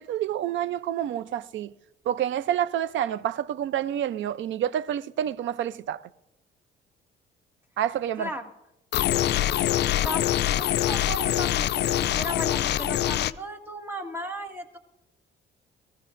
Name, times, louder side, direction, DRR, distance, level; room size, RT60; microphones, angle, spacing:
voice 1, 0.0-1.7 2.1-6.0 7.8-8.3, right 10 dB, 70° right, 0.6 m, -28 dB
voice 2, 8.2-8.5 10.0-14.8, equal, 10° right, 1.8 m, -36 dB
sound 1, 8.9-13.3, left 12 dB, 60° left, 0.4 m, -24 dB
22.0 x 15.0 x 2.6 m
cardioid pair, 90°, 20 cm